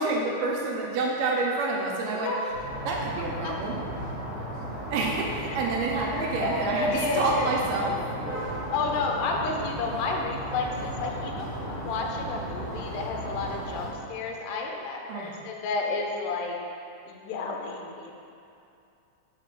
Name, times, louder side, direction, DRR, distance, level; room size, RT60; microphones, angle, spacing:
voice 1, 0.0-2.3 2.8-3.7 4.9-8.0 15.1-15.4, right 3 dB, 90° right, -2 dB, 1.5 m, -28 dB
voice 2, 2.1-2.7 3.4-3.6 6.1-7.5 8.7-16.6 17.1-18.1, left 3 dB, 75° left, 1 dB, 2.1 m, -31 dB
sound 1, 2.5-13.9, right 1 dB, 50° right, 2.5 m, -35 dB
4.9 x 4.8 x 6.1 m, 2.6 s
omnidirectional pair, 3.8 m